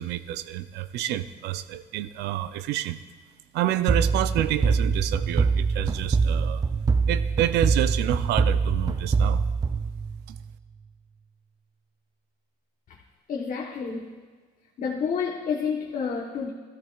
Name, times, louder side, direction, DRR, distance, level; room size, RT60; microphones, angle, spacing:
voice 1, 0.0-3.0 3.5-6.6 7.1-9.4, right 13 dB, 80° right, 13 dB, 0.5 m, -28 dB
sound 1, 3.9-10.5, right 5 dB, 20° right, 0.4 m, -24 dB
voice 2, 13.3-14.1 14.8-16.5, left 6 dB, 50° left, -2 dB, 1.1 m, -29 dB
14.5 x 13.5 x 2.4 m, 1.5 s
cardioid pair, 110°, 17 cm